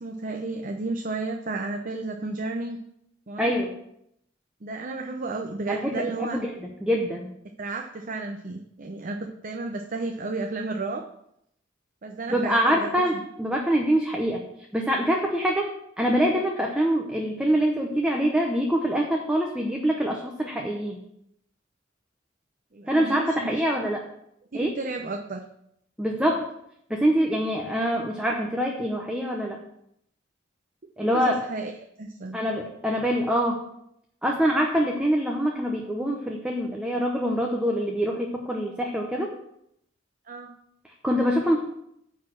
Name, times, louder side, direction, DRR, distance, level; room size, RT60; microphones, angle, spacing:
voice 1, 0.0-2.8 3.3-3.5 4.6-6.4 7.6-11.0 12.0-13.2 22.7-23.5 24.5-25.4 31.0-31.7 32.0-32.4 40.3-40.5, right 3 dB, 45° right, 2 dB, 0.7 m, -32 dB
voice 2, 3.4-3.8 5.7-6.5 6.8-7.3 12.3-14.4 14.7-15.7 16.0-21.0 22.9-24.0 24.5-24.7 26.0-26.5 26.9-29.6 31.0-31.4 32.3-33.6 34.2-39.3 41.0-41.6, equal, 5° right, 0 dB, 0.9 m, -25 dB
9.6 x 4.2 x 7.4 m, 0.76 s
head